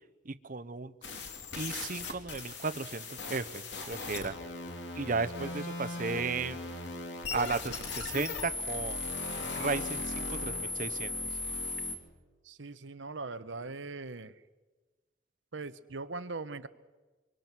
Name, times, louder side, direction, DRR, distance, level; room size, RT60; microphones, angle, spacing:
voice 1, 0.3-0.9 1.6-4.4 4.9-6.6 7.3-9.0 9.4-11.2, right 4 dB, 45° right, 13 dB, 0.9 m, -35 dB
sound 1, 1.0-12.0, left 3 dB, 65° left, 3.2 m, -37 dB
voice 2, 12.4-14.4 15.5-16.7, right 3 dB, 85° right, 13 dB, 1.1 m, -40 dB
25.5 x 24.0 x 6.1 m, 1.3 s
head